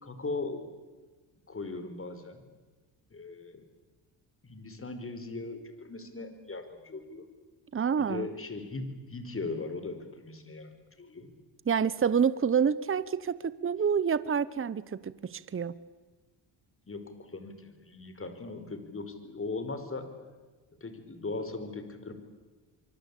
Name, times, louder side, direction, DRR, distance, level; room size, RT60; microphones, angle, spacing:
voice 1, 0.0-0.7 1.5-2.4 3.1-3.6 4.4-7.2 8.0-10.7 11.0-11.3 16.9-20.1 20.8-22.1, left 3 dB, 30° left, 9 dB, 4.9 m, -39 dB
voice 2, 7.7-8.3 11.7-15.7, right 7 dB, 30° right, 17 dB, 1.0 m, -28 dB
25.5 x 24.5 x 8.6 m, 1.3 s
cardioid pair, 85°, 44 cm